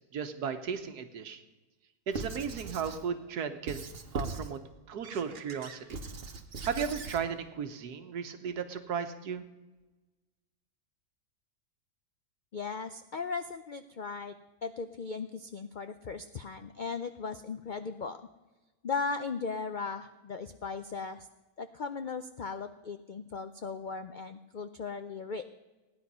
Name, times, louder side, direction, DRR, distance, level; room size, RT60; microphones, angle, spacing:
voice 1, 0.0-1.4 2.1-3.8 4.1-4.6 4.9-6.0 6.6-9.4, right 7 dB, 85° right, 8 dB, 1.6 m, -35 dB
Squeak / Writing, 2.1-3.1 3.7-4.6 5.0-7.2, right 3 dB, 40° right, 1.2 m, -40 dB
voice 2, 12.5-18.2 18.8-21.3 21.6-25.5, left 4 dB, 75° left, 9 dB, 0.4 m, -37 dB
17.0 x 10.0 x 5.5 m, 1.1 s
omnidirectional pair, 1.6 m